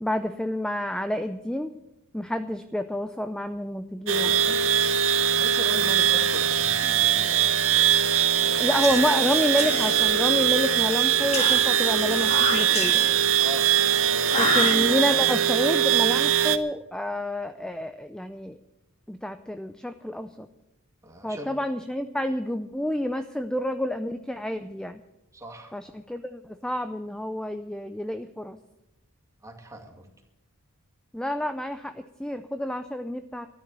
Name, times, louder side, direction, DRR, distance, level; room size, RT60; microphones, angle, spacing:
voice 1, 0.0-1.7 2.1-4.6 8.6-13.0 14.4-18.6 19.1-20.5 21.2-25.0 25.7-28.6 31.1-33.5, left 1 dB, 5° left, 9 dB, 0.5 m, -29 dB
sound 1, 4.1-16.6, right 9 dB, 65° right, 0.9 m, -22 dB
voice 2, 5.3-7.8 13.4-14.6 21.0-21.5 25.3-25.7 29.4-30.1, right 1 dB, 15° right, 2 dB, 2.3 m, -40 dB
Whispering, 8.6-10.6 11.3-13.4 14.3-15.3, left 2 dB, 30° left, 2.3 m, -30 dB
13.0 x 10.5 x 8.7 m, 0.91 s
head